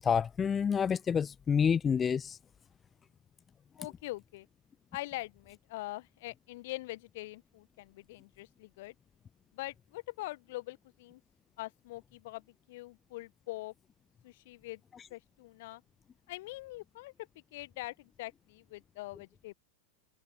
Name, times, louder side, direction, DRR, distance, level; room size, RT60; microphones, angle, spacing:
voice 1, 0.0-2.4, left 7 dB, 20° left, 0.5 m, -28 dB
voice 2, 3.8-4.5 4.9-8.9 9.5-11.2 11.6-13.7 14.2-14.8 15.1-15.8 16.3-19.5, left 19 dB, 50° left, 1.7 m, -43 dB
figure-of-eight pair, 90°, 0 cm